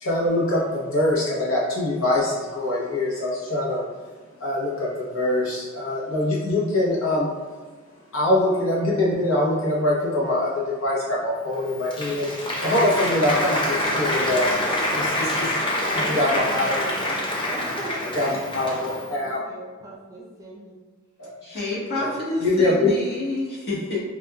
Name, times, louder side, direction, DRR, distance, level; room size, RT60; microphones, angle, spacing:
voice 1, 0.0-3.8 4.4-7.3 8.1-12.3 12.6-14.5 15.0-15.1 16.1-16.7 18.1-19.4 21.2-21.3 22.0-22.9, left 1 dB, 70° left, -5 dB, 0.9 m, -23 dB
Applause, 11.5-19.1, left 1 dB, 25° left, 0.5 m, -26 dB
voice 2, 14.6-15.2 15.8-16.9 17.4-20.8, equal, 15° right, -5 dB, 0.6 m, -37 dB
voice 3, 21.4-24.0, left 2 dB, 50° left, -7 dB, 1.2 m, -28 dB
4.8 x 2.3 x 2.3 m, 1.5 s
head